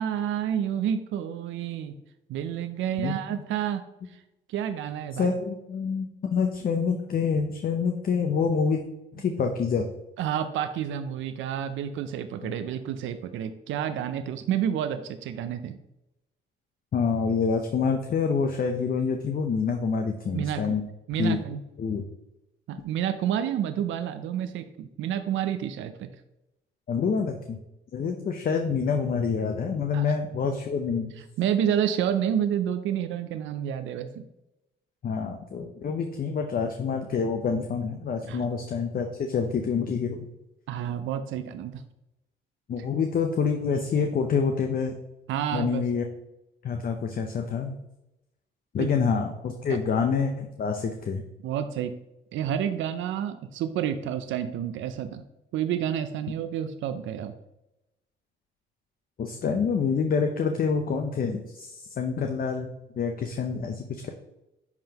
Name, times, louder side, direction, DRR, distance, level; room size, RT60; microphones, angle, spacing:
voice 1, 0.0-2.0 2.3-4.2 4.5-5.3 10.2-15.8 20.3-20.8 21.1-21.6 22.7-26.1 29.9-30.1 31.4-34.2 38.3-38.4 40.7-41.8 45.3-45.8 48.8-48.9 49.7-49.8 51.4-51.9 52.3-55.2 55.5-57.3, right 9 dB, 75° right, 9 dB, 0.5 m, -29 dB
voice 2, 5.2-8.8 9.1-9.8 12.4-12.6 16.9-20.9 21.2-21.4 21.8-22.0 26.9-27.6 27.9-31.1 35.0-40.2 42.7-45.0 45.5-46.0 46.6-47.8 48.7-51.2 59.2-62.7 63.0-64.1, left 5 dB, 45° left, 4 dB, 0.7 m, -27 dB
10.5 x 3.8 x 2.9 m, 0.91 s
cardioid pair, 90°, 20 cm